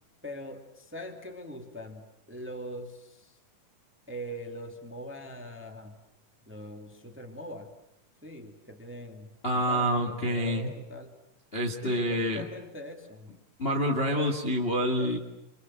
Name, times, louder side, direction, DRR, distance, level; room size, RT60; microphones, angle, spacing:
voice 1, 0.2-3.4 4.1-6.0 6.5-7.7 8.2-11.2 11.7-13.3 14.1-14.3 15.0-15.2, equal, 5° right, 5 dB, 1.9 m, -42 dB
voice 2, 9.4-10.7 11.5-12.5 13.6-15.2, equal, 20° left, 2 dB, 1.7 m, -27 dB
29.5 x 25.5 x 7.7 m, 0.83 s
omnidirectional pair, 3.8 m